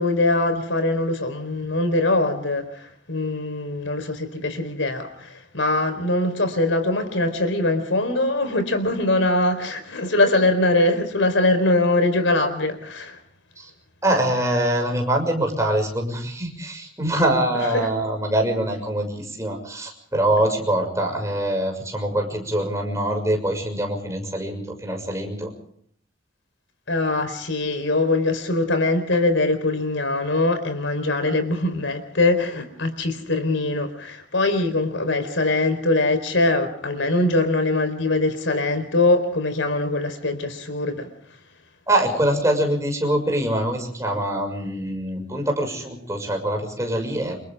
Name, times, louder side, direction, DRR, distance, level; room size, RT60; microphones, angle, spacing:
voice 1, 0.0-2.8 3.1-13.2 17.7-17.9 26.9-41.1, left 2 dB, 85° left, 4.4 m, -22 dB
voice 2, 14.0-25.5 41.9-47.4, right 1 dB, 15° right, 6.5 m, -24 dB
29.0 x 27.5 x 3.7 m
head